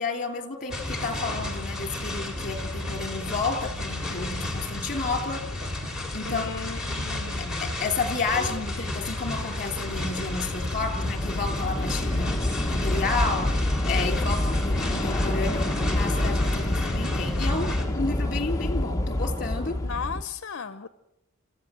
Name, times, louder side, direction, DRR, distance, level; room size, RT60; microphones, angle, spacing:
voice 1, 0.0-5.4 6.1-6.5 7.6-12.4 12.7-13.5 13.9-19.8, left 4 dB, 40° left, 6 dB, 3.0 m, -31 dB
sound 1, 0.7-17.8, left 1 dB, 5° right, 3.3 m, -32 dB
voice 2, 6.2-7.8 19.8-20.9, left 6 dB, 60° left, 13 dB, 0.7 m, -36 dB
Train / Subway metro underground, 7.3-7.4 7.7-20.2, left 1 dB, 15° left, 0.8 m, -28 dB
28.5 x 14.5 x 7.5 m, 0.93 s
head